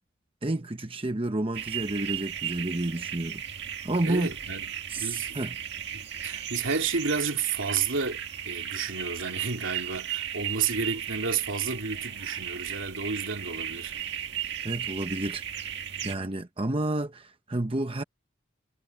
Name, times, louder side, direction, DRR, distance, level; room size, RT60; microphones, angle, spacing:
voice 1, 0.4-3.4 3.8-4.3 4.9-5.6 14.6-15.7 16.0-18.0, right 2 dB, 25° right, 0.9 m, -30 dB
sound 1, 1.5-16.2, right 9 dB, 55° right, 2.0 m, -36 dB
voice 2, 4.0-4.7 5.0-5.4 5.9-14.0 16.0-16.5, right 5 dB, 75° right, 2.7 m, -31 dB
head